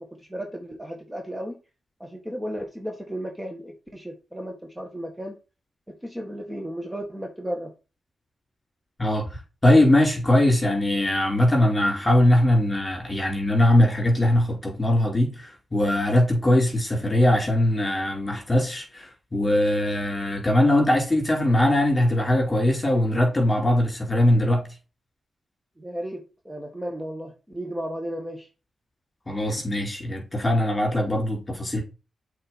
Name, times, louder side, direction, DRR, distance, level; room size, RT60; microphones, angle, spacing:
voice 1, 0.0-1.6 2.0-5.4 5.9-7.7 25.8-28.5, equal, 10° right, 1.8 m, -34 dB
voice 2, 9.0-24.7 29.3-31.8, left 1 dB, 25° left, 4.5 m, -21 dB
7.6 x 4.4 x 4.4 m
cardioid pair, 60°, 0 cm